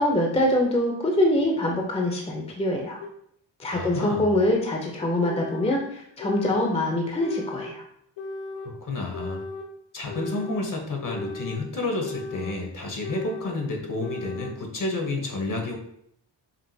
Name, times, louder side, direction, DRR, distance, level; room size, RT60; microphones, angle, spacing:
voice 1, 0.0-3.0 3.6-7.8, left 1 dB, 15° left, 0 dB, 0.7 m, -24 dB
sound 1, 3.0-3.1 4.0-4.1 5.0-5.8 6.2-6.8 7.2-7.7 8.2-8.7 9.1-9.7 10.1-10.7 11.1-11.6 12.0-12.6 13.0-13.6 14.0-14.6, left 2 dB, 80° left, 0.7 m, -36 dB
voice 2, 3.7-4.3 8.6-9.4 9.9-15.8, left 2 dB, 45° left, 2 dB, 1.0 m, -30 dB
5.3 x 2.5 x 2.7 m, 0.70 s
cardioid pair, 90°, 44 cm